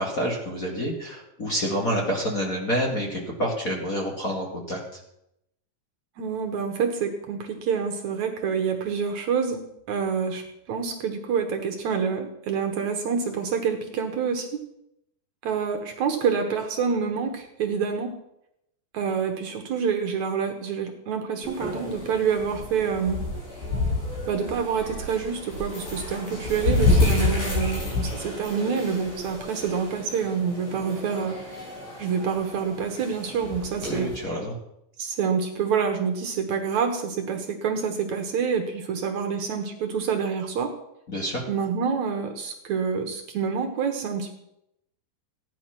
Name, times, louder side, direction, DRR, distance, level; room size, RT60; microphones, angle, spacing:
voice 1, 0.0-5.0 33.8-34.5 41.1-41.4, equal, 30° left, -1 dB, 2.2 m, -28 dB
voice 2, 6.2-9.6 9.9-14.6 15.4-18.1 18.9-23.2 24.3-31.7 32.0-34.1 35.0-40.7 41.5-44.3, right 6 dB, 65° right, 5 dB, 2.4 m, -27 dB
sound 1, 21.4-34.2, left 2 dB, 65° left, 7.2 m, -29 dB
16.0 x 10.5 x 6.0 m, 0.81 s
omnidirectional pair, 4.0 m